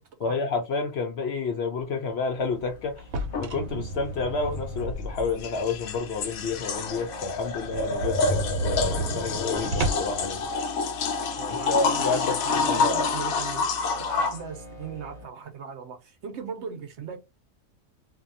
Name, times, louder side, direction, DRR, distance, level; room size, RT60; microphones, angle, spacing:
voice 1, 0.2-3.1 3.4-10.4 11.5-12.4 12.7-13.1, left 4 dB, 60° left, 0.8 m, -30 dB
sound 1, 1.8-15.2, left 1 dB, 25° left, 0.8 m, -46 dB
sound 2, 3.0-5.5 6.0-6.1 6.5-6.6 6.8-6.9 7.2-7.3 7.6-10.2, right 1 dB, 90° right, 1.1 m, -31 dB
sound 3, 3.3-3.5 5.2-14.4, left 4 dB, 85° left, 1.0 m, -28 dB
voice 2, 11.4-13.7 14.0-17.2, right 6 dB, 60° right, 0.8 m, -38 dB
2.7 x 2.2 x 2.6 m
omnidirectional pair, 1.4 m